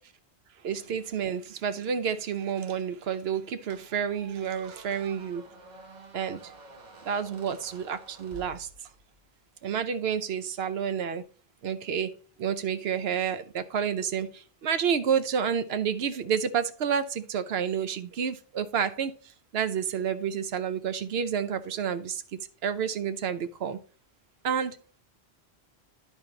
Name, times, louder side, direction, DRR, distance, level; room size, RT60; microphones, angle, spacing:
voice 1, 0.6-5.4 6.1-6.5 7.0-8.7 9.6-11.2 11.6-19.1 19.5-22.2 22.6-23.8 24.4-24.8, right 7 dB, 70° right, 0.9 m, -29 dB
Squeak, 3.7-9.2, right 2 dB, 45° right, 1.0 m, -50 dB
10.5 x 4.5 x 3.8 m
omnidirectional pair, 1.1 m